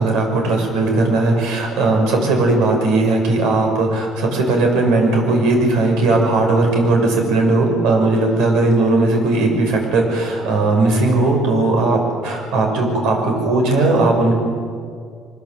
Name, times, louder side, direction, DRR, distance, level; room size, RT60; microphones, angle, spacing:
voice 1, 0.0-14.3, right 2 dB, 90° right, 2 dB, 6.2 m, -17 dB
24.0 x 20.5 x 7.9 m, 2.1 s
cardioid pair, 175°, 0 cm